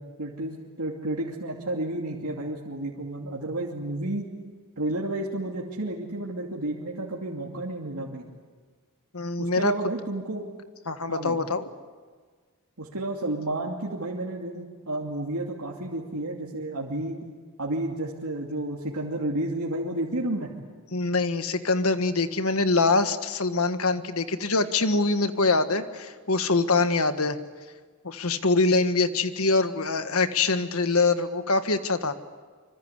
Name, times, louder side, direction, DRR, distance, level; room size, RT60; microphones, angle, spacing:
voice 1, 0.0-4.3 4.8-8.2 9.4-10.5 11.1-11.4 12.8-17.2 17.6-20.5, right 1 dB, 85° right, -3 dB, 2.7 m, -31 dB
voice 2, 9.1-9.7 10.9-11.6 20.9-27.4 28.0-32.1, left 3 dB, 70° left, 9 dB, 1.6 m, -24 dB
26.0 x 25.0 x 8.2 m, 1.5 s
head